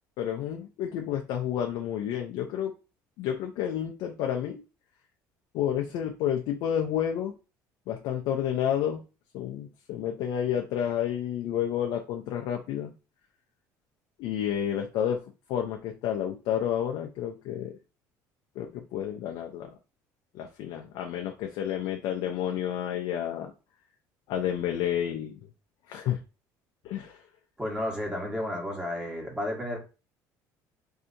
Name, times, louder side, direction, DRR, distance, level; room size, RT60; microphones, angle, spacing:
voice 1, 0.2-2.7 3.2-4.6 5.5-7.3 7.9-9.0 9.3-12.9 14.2-15.2 15.5-17.7 18.6-19.8 20.3-23.5 24.3-25.4 25.9-26.2 26.8-27.2, left 10 dB, 70° left, 0.5 m, -30 dB
voice 2, 27.6-29.8, left 1 dB, 10° right, 1.3 m, -32 dB
3.2 x 2.7 x 2.6 m
cardioid pair, 115°, 8 cm